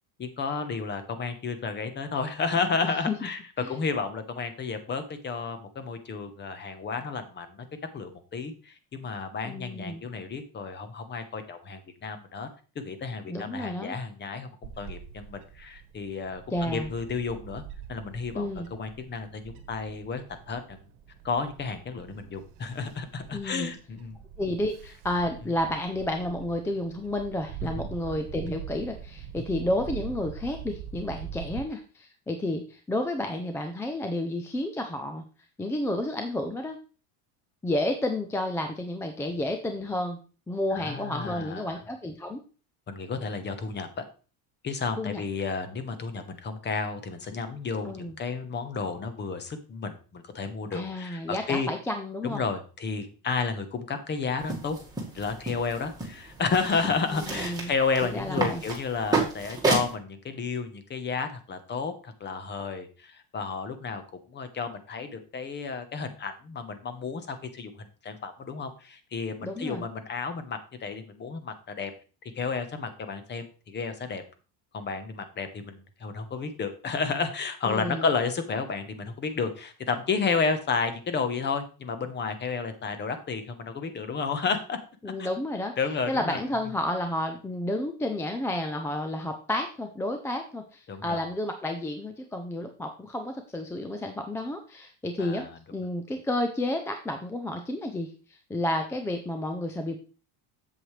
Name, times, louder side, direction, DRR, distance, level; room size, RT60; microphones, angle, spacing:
voice 1, 0.2-3.4 3.7-7.6 7.9-12.5 12.7-17.6 17.9-20.8 21.2-24.2 27.6-27.9 40.7-41.8 42.9-44.0 44.6-51.7 52.2-54.8 55.1-71.9 72.2-74.2 74.7-84.8 85.2-85.3 85.8-86.4 90.9-91.2 95.2-95.6, left 5 dB, 25° left, 9 dB, 1.0 m, -32 dB
voice 2, 9.4-10.0 13.3-14.0 16.5-16.9 18.4-18.7 23.3-23.7 24.4-35.2 35.6-36.8 37.6-40.2 40.5-42.4 45.0-45.2 47.8-48.2 50.7-52.5 57.0-57.7 58.0-58.6 69.4-69.8 77.7-78.1 85.0-85.7 86.1-100.0, left 1 dB, 5° left, 5 dB, 0.4 m, -31 dB
Bird / Wind, 14.6-31.6, right 9 dB, 65° right, 1.3 m, -43 dB
sound 1, 54.4-59.9, right 3 dB, 10° right, 1.8 m, -31 dB
7.8 x 7.5 x 3.2 m, 0.36 s
cardioid pair, 150°, 44 cm